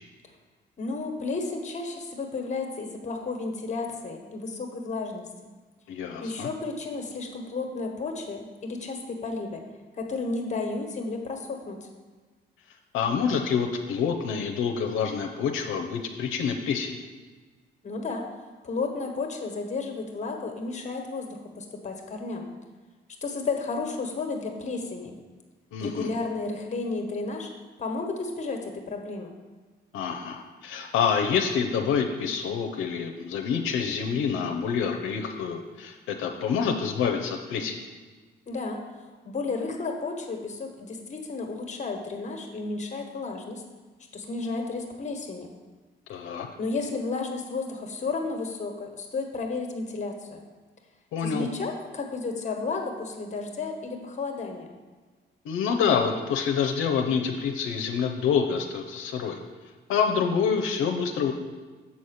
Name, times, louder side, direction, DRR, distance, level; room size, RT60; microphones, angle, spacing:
voice 1, 0.8-5.5 6.2-9.6 10.0-11.9 17.8-18.3 18.6-22.5 23.2-25.2 25.8-27.5 27.8-29.3 38.5-43.6 44.1-45.5 46.6-50.4 51.2-54.7, left 3 dB, 35° left, 3 dB, 1.3 m, -32 dB
voice 2, 5.9-6.5 12.9-17.0 25.7-26.1 29.9-37.8 46.1-46.5 51.1-51.5 55.4-59.4 59.9-61.3, left 6 dB, 90° left, 4 dB, 0.6 m, -27 dB
7.2 x 4.2 x 6.4 m, 1.4 s
cardioid pair, 90°, 20 cm